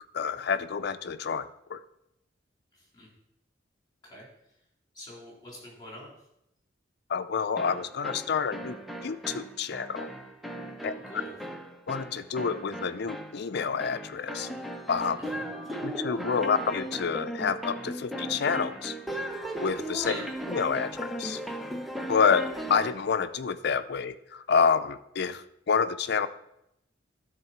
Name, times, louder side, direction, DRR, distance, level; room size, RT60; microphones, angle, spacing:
voice 1, 0.1-1.8 7.1-10.1 10.8-10.9 11.9-14.5 14.9-15.2 15.8-18.9 19.6-20.1 20.5-21.4 22.1-26.3, left 6 dB, 60° left, 12 dB, 0.5 m, -28 dB
voice 2, 2.7-3.1 4.0-4.3 4.9-6.1 10.8-11.4 15.2-15.5 20.0-20.3, equal, 25° left, -3 dB, 3.6 m, -44 dB
sound 1, 7.6-23.0, right 1 dB, ahead, 0.7 m, -37 dB
12.0 x 4.0 x 5.7 m, 0.82 s
head